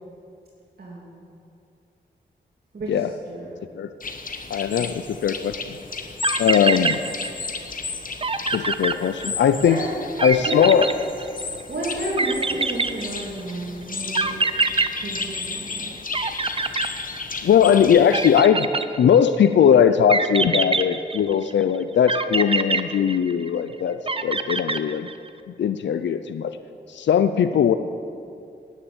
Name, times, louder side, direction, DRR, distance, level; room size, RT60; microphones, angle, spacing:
voice 1, 0.8-1.2 2.7-3.5 9.6-9.9 10.4-10.7 11.7-14.4 15.0-15.9, right 1 dB, 55° right, -6 dB, 2.9 m, -31 dB
sound 1, 4.0-18.4, left 4 dB, 50° left, 1.1 m, -34 dB
voice 2, 4.5-5.8 6.4-7.0 8.5-9.8 10.2-10.9 17.4-18.7 19.0-25.1 25.5-26.6 26.9-27.8, left 8 dB, 75° left, 11 dB, 0.5 m, -19 dB
sound 2, 6.0-6.1 6.2-7.6 7.9-8.0 8.2-9.6 10.2-11.6 12.2-13.5 14.1-15.8 16.1-17.5 18.1-19.3 20.1-21.5 22.1-23.6 24.1-25.3, right 3 dB, 30° right, 0.7 m, -25 dB
10.5 x 9.8 x 8.6 m, 2.5 s
cardioid pair, 55°, 19 cm